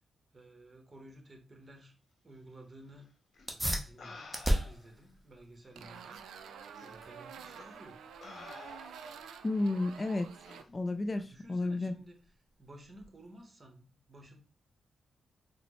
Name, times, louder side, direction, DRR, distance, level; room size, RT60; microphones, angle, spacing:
voice 1, 0.3-1.9 2.2-3.1 3.5-6.2 6.8-8.0 11.1-12.2 12.6-14.4, right 1 dB, 35° right, 1.1 m, -54 dB
sound 1, 3.3-3.5 4.0-4.9 5.8-5.9 6.7-6.9 7.6-7.8 8.2-9.2 10.5-10.7, left 4 dB, 60° left, 0.7 m, -50 dB
sound 2, 3.4-13.4, right 1 dB, 10° right, 0.9 m, -39 dB
sound 3, 5.8-10.6, right 7 dB, 80° right, 0.3 m, -49 dB
voice 2, 9.4-10.3 10.7-11.9, left 2 dB, 35° left, 0.3 m, -32 dB
4.0 x 2.1 x 3.0 m
supercardioid pair, 50°, 0 cm